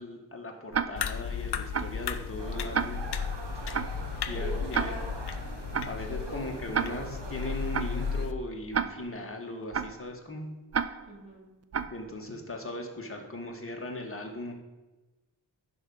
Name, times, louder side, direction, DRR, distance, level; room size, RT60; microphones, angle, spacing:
voice 1, 0.0-3.1 3.7-3.8 4.3-4.9 5.8-10.5 11.9-14.5, left 1 dB, 30° left, 1 dB, 1.6 m, -38 dB
Tick-tock, 0.7-1.2 1.7-2.1 2.7-3.2 3.7-4.1 4.7-5.2 5.7-6.1 6.7-7.2 7.7-8.1 8.7-9.2 9.7-10.1 10.7-11.2 11.7-12.1, right 6 dB, 35° right, 0.4 m, -32 dB
sound 1, 1.0-8.3, left 6 dB, 60° left, 0.6 m, -35 dB
voice 2, 2.0-2.9 4.3-5.6 5.8-6.5 11.0-11.5, equal, 15° right, -7 dB, 3.3 m, -45 dB
sound 2, 2.4-8.3, right 3 dB, 65° right, 1.3 m, -41 dB
11.0 x 4.9 x 5.5 m, 1.1 s
wide cardioid pair, 75°, 46 cm